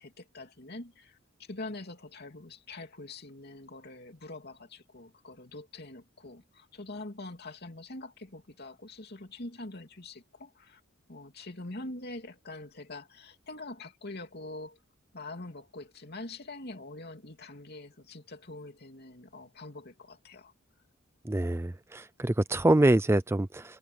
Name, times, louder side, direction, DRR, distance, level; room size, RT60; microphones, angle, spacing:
voice 1, 0.0-10.8 11.1-14.8 15.1-20.5, left 2 dB, 50° left, 2.9 m, -44 dB
voice 2, 21.3-23.8, right 1 dB, 10° right, 0.4 m, -25 dB
head